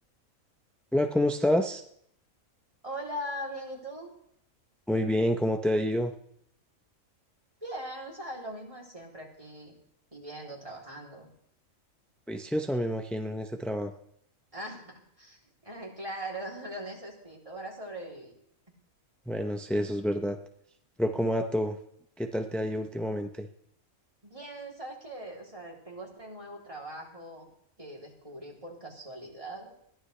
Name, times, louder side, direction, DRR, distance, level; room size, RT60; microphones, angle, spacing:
voice 1, 0.9-1.8 4.9-6.1 12.3-13.9 19.3-20.4 21.0-21.8 22.2-23.5, equal, ahead, 4 dB, 0.5 m, -28 dB
voice 2, 2.8-4.1 7.6-9.8 10.1-11.3 14.5-18.3 24.2-27.5 27.8-29.7, right 1 dB, 25° right, -2 dB, 3.5 m, -41 dB
21.0 x 15.5 x 3.3 m, 0.70 s
omnidirectional pair, 1.4 m